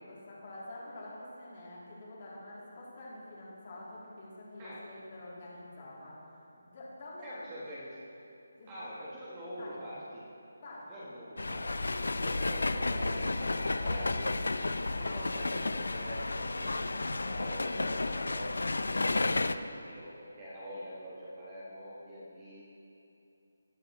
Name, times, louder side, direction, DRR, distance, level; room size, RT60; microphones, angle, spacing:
voice 1, 0.1-6.2 6.6-7.4 8.5-8.7 9.6-9.9 10.6-11.1, left 1 dB, 30° left, -6 dB, 3.0 m, -47 dB
voice 2, 7.2-8.0 8.7-10.2 10.9-11.9 12.2-14.7 15.0-22.6, equal, 15° right, -8 dB, 1.3 m, -44 dB
sound 1, 11.4-19.6, left 2 dB, 85° left, 0.6 m, -32 dB
19.5 x 9.3 x 3.1 m, 2.8 s
hypercardioid pair, 175°, 0 cm